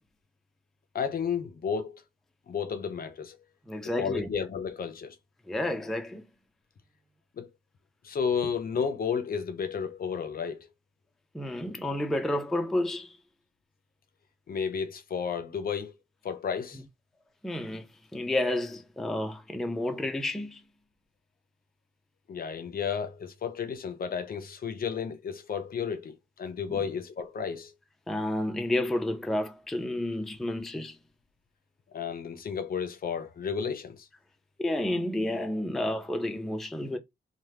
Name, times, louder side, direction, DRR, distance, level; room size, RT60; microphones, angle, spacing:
voice 1, 0.9-2.0 2.5-3.4 4.0-5.2 7.3-7.5 8.0-10.7 14.5-15.9 16.2-16.8 22.3-27.7 31.9-34.1, left 6 dB, 50° left, 0.5 m, -32 dB
voice 2, 3.7-4.3 5.5-6.2 11.3-13.2 17.4-17.9 18.1-20.6 26.7-26.8 28.1-31.0 34.6-37.0, left 1 dB, ahead, 0.3 m, -30 dB
2.9 x 2.1 x 3.2 m
wide cardioid pair, 115°, 19 cm